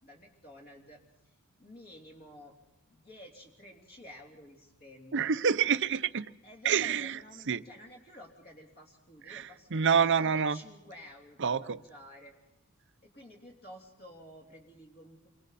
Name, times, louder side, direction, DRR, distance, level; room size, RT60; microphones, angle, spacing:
voice 1, 0.0-2.6 2.9-5.3 6.4-12.3 13.0-15.3, equal, 45° left, -1 dB, 3.3 m, -52 dB
voice 2, 5.1-6.3 6.6-7.2 7.5-7.6 9.3-10.6 11.4-11.8, right 6 dB, 55° right, 13 dB, 0.7 m, -27 dB
28.0 x 24.0 x 4.2 m, 0.97 s
head